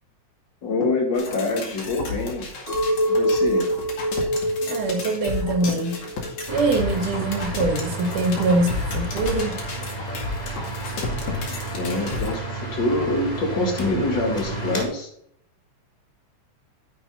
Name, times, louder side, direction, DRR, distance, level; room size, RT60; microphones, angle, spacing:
voice 1, 0.6-2.5 3.1-3.7 11.8-15.1, left 2 dB, 40° left, 0 dB, 2.7 m, -25 dB
sound 1, 1.1-12.3, left 4 dB, 65° left, 3.4 m, -32 dB
Chink clink, 2.7-7.0 7.4-8.0, equal, 60° right, 4.5 m, -26 dB
voice 2, 4.7-6.0 6.5-9.6, right 2 dB, 85° right, 4 dB, 3.5 m, -23 dB
sound 2, 6.5-14.9, right 3 dB, 15° left, 1.5 m, -32 dB
9.8 x 7.4 x 3.9 m, 0.70 s
omnidirectional pair, 3.5 m